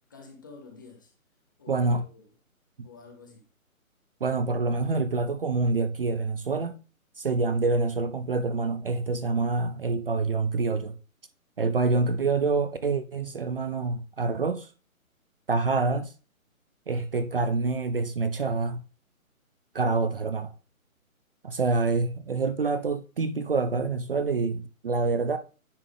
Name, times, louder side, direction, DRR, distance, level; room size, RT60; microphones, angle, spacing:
voice 1, 0.1-1.1 1.6-2.3 2.8-3.5, left 4 dB, 15° left, 0.6 m, -48 dB
voice 2, 1.7-2.0 2.8-2.9 4.2-6.8 7.2-10.9 11.6-14.7 15.5-16.1 16.9-18.8 19.7-20.5 21.4-25.4, right 3 dB, 40° right, 0.5 m, -26 dB
9.8 x 3.6 x 3.4 m
hypercardioid pair, 150°, 43 cm